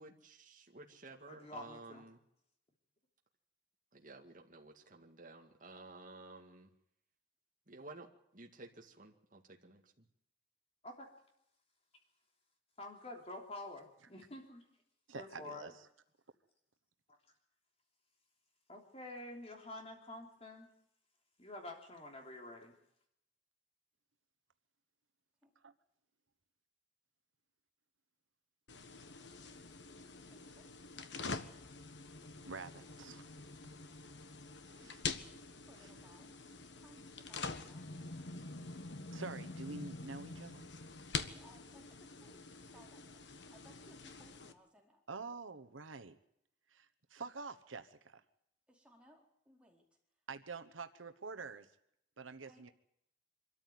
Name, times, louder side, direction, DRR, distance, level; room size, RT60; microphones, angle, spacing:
voice 1, 0.0-2.2 3.9-6.7 7.7-10.0, right 2 dB, 45° right, 1 dB, 2.1 m, -54 dB
voice 2, 1.3-2.0 10.8-11.1 12.8-14.6 15.1-15.7 18.7-20.7 21.4-22.7, left 2 dB, 30° left, 2 dB, 3.3 m, -48 dB
voice 3, 15.1-15.9 25.6-25.7 32.5-33.3 34.6-35.0 35.8-35.9 39.1-40.6 45.1-46.2 46.7-48.2 50.3-51.7 52.2-52.7, right 4 dB, 90° right, 9 dB, 1.2 m, -47 dB
sound 1, 28.7-44.5, left 4 dB, 60° left, 1.5 m, -46 dB
voice 4, 30.3-30.9 34.8-34.9 35.7-38.1 41.2-45.0 48.7-49.9 52.5-52.6, equal, 5° right, -1 dB, 4.4 m, -64 dB
25.0 x 13.5 x 9.4 m, 0.77 s
head